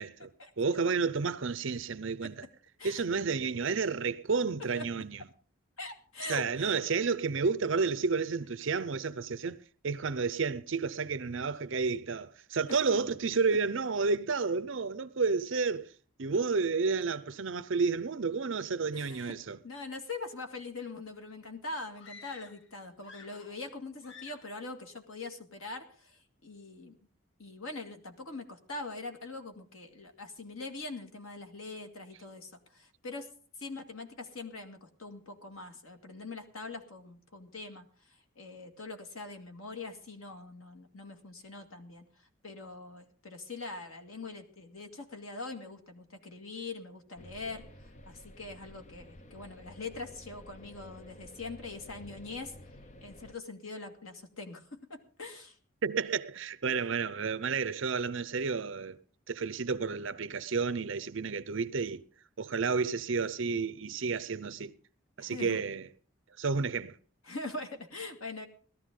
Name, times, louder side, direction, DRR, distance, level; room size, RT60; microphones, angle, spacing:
voice 1, 0.0-0.3 0.6-2.3 2.8-5.2 6.3-9.6 9.8-15.9 16.2-19.6 55.8-59.0 59.3-62.0 62.4-64.7 65.2-65.9 66.4-67.0, right 4 dB, 65° right, 0.6 m, -31 dB
voice 2, 5.8-6.8 12.7-13.0 18.9-19.3 19.6-27.0 27.4-33.3 33.6-42.1 42.4-52.6 53.0-55.6 65.2-65.6 67.2-68.5, left 3 dB, 85° left, 2.1 m, -43 dB
sound 1, 22.0-22.7 23.0-23.7 24.0-24.6, left 5 dB, 60° left, 1.0 m, -51 dB
sound 2, 47.2-53.4, left 1 dB, 35° left, 0.6 m, -52 dB
18.0 x 13.5 x 3.7 m
head